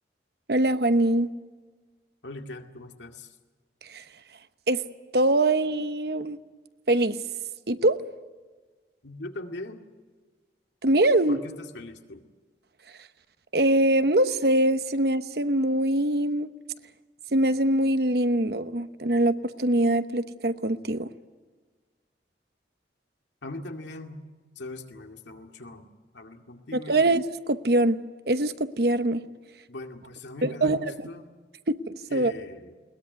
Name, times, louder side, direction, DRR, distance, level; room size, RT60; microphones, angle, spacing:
voice 1, 0.5-1.3 3.9-4.0 4.7-4.8 5.1-6.4 6.9-7.2 7.7-8.0 10.8-11.4 13.5-16.5 17.3-21.1 26.7-28.0 28.3-29.2 30.4-31.1 31.7-32.3, right 1 dB, 60° right, 11 dB, 1.0 m, -23 dB
voice 2, 2.2-3.3 9.0-9.8 11.3-12.2 23.4-24.2 24.6-25.9 26.1-27.0 29.7-31.3 32.1-32.7, left 2 dB, 80° left, 4 dB, 2.2 m, -40 dB
21.5 x 20.5 x 9.3 m, 1.4 s
head